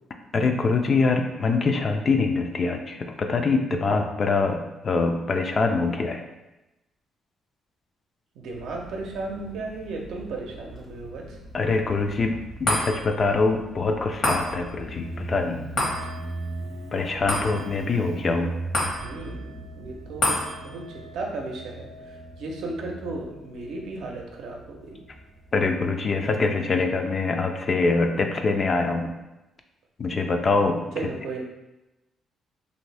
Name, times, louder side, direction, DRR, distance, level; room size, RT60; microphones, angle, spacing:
voice 1, 0.3-4.6 4.8-6.2 11.5-15.6 16.9-18.5 25.5-29.1 30.0-30.8, left 3 dB, 40° left, 5 dB, 0.4 m, -24 dB
voice 2, 8.4-11.4 19.0-20.4 20.6-25.0 30.9-31.4, right 3 dB, 80° right, 0 dB, 0.6 m, -35 dB
Motorcycle, 8.5-25.7, right 2 dB, 45° right, 0.8 m, -40 dB
sound 1, 12.6-25.2 25.7-25.8, left 1 dB, 75° left, 1.2 m, -33 dB
2.6 x 2.6 x 3.2 m, 0.98 s
cardioid pair, 90°, 0 cm